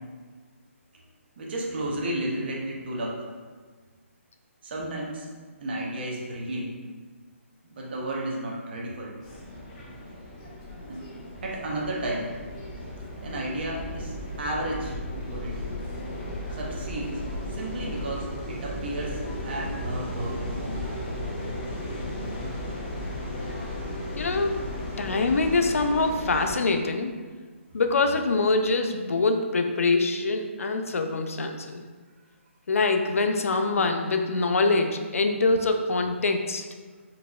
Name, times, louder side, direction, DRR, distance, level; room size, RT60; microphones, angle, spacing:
voice 1, 1.4-3.2 4.6-5.3 5.6-6.8 7.6-9.2 10.8-11.0 11.4-12.3 13.2-14.9 15.3-15.7 16.5-17.2 17.5-20.9, right 1 dB, 50° right, -2 dB, 0.7 m, -33 dB
sound 1, 9.2-26.6, left 1 dB, 30° left, 0.6 m, -35 dB
voice 2, 24.2-24.7 25.0-27.2 27.7-31.8 32.7-36.6, left 3 dB, 85° left, 6 dB, 0.4 m, -24 dB
3.9 x 2.7 x 2.3 m, 1.5 s
hypercardioid pair, 160°, 7 cm